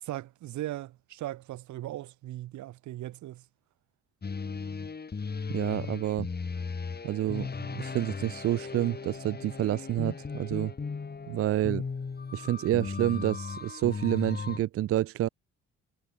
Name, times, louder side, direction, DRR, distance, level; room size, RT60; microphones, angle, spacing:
voice 1, 0.0-3.4, right 15 dB, 75° right, 1.2 m, -38 dB
sound 1, 4.2-14.6, left 5 dB, 35° left, 2.8 m, -36 dB
voice 2, 5.5-6.3 7.0-10.7 11.3-11.8 12.3-15.3, right 13 dB, 50° right, 0.4 m, -29 dB
supercardioid pair, 65°, 30 cm